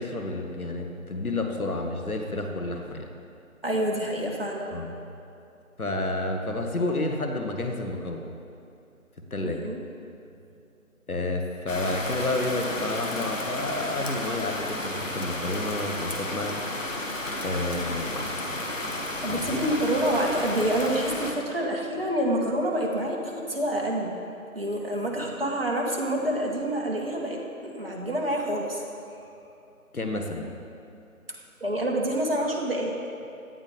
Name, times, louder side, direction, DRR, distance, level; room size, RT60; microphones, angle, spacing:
voice 1, 0.0-3.1 4.7-4.9 5.8-8.2 9.3-9.6 11.1-16.7 17.4-18.4 18.6-19.0 19.3-19.7 29.9-30.5, left 2 dB, 80° left, 3 dB, 1.9 m, -30 dB
voice 2, 3.6-4.8 9.4-9.8 19.2-24.1 24.6-28.8 31.6-32.9, right 1 dB, 40° right, -2 dB, 1.7 m, -27 dB
sound 1, 11.7-21.3, left 1 dB, 60° left, 1.7 m, -32 dB
17.0 x 11.5 x 3.5 m, 2.6 s
figure-of-eight pair, 175°, 43 cm